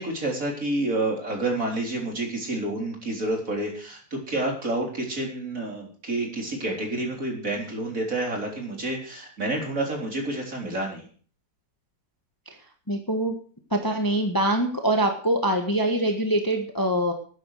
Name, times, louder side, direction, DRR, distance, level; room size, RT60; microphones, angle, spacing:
voice 1, 0.0-11.1, right 2 dB, 45° right, 0 dB, 4.3 m, -29 dB
voice 2, 12.9-13.3 13.7-17.1, right 1 dB, 10° left, 4 dB, 1.5 m, -24 dB
13.0 x 9.7 x 6.5 m, 0.43 s
omnidirectional pair, 2.0 m